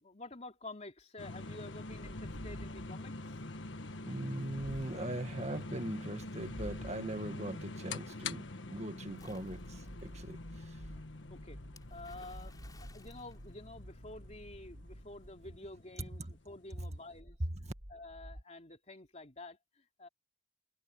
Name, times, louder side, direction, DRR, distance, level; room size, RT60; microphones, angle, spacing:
voice 1, 0.0-3.4 9.8-9.9 10.2-10.3 11.3-11.6 11.9-17.4 17.9-20.1, left 2 dB, 35° left, 3.4 m, -50 dB
sound 1, 1.2-17.2, left 2 dB, 75° left, 1.5 m, -46 dB
sound 2, 1.9-3.1 4.5-5.1 6.4-7.1 9.0-15.8 17.1-18.4, equal, 60° right, 5.8 m, -50 dB
voice 2, 4.0-10.8 16.2-16.3, right 1 dB, 35° right, 1.8 m, -40 dB
Splash splatter, 9.1-10.1 11.8-14.2, left 3 dB, 20° left, 5.4 m, -61 dB
head